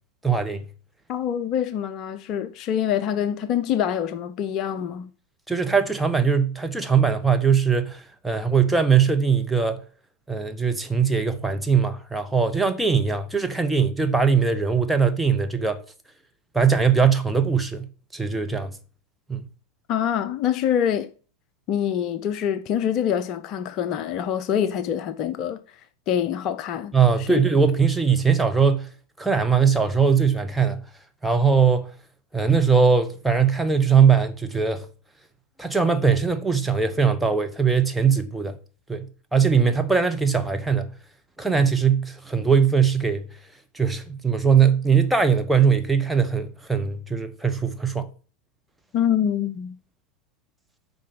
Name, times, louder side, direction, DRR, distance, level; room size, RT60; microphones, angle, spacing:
voice 1, 0.2-0.6 5.5-9.8 10.3-15.8 16.5-17.9 18.1-18.7 19.3-19.5 26.9-28.9 29.2-30.8 31.2-31.9 32.3-34.9 35.6-38.6 38.9-40.9 41.4-43.2 43.7-48.1, right 6 dB, 5° right, 1.0 m, -20 dB
voice 2, 1.1-5.1 19.9-21.1 21.7-25.6 26.1-26.9 27.2-27.4 48.9-49.8, left 9 dB, 35° left, 0.6 m, -25 dB
8.7 x 5.4 x 5.4 m
figure-of-eight pair, 90°, 0 cm